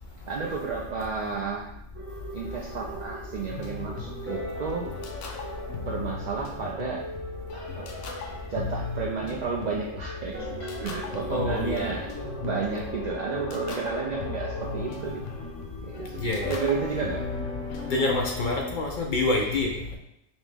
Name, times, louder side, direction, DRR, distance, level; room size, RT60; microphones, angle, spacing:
voice 1, 0.3-1.7 2.3-4.9 5.3-5.5 5.8-7.0 7.5-8.0 8.5-12.1 12.4-15.2 15.8-17.2, right 5 dB, 65° right, -3 dB, 0.4 m, -32 dB
sound 1, 2.0-18.5, equal, 10° right, 0.7 m, -41 dB
sound 2, 3.5-18.7, left 4 dB, 90° left, 0.9 m, -37 dB
voice 2, 11.3-11.9 16.2-16.5 17.9-20.0, left 2 dB, 60° left, 1 dB, 0.5 m, -27 dB
5.3 x 2.0 x 3.3 m, 0.82 s
omnidirectional pair, 1.2 m